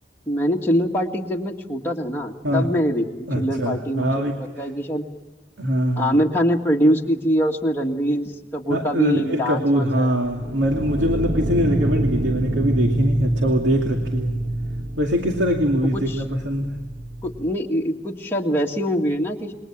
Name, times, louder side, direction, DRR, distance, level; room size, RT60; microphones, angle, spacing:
voice 1, 0.3-4.2 4.6-5.0 6.0-10.1 15.8-16.2 17.2-19.5, equal, 10° left, -1 dB, 2.0 m, -23 dB
voice 2, 3.3-4.7 5.6-6.1 8.7-14.3 15.0-16.8, equal, 75° right, 2 dB, 2.5 m, -22 dB
sound 1, 10.4-17.5, right 1 dB, 50° right, 1.1 m, -26 dB
28.0 x 22.0 x 7.4 m, 1.2 s
head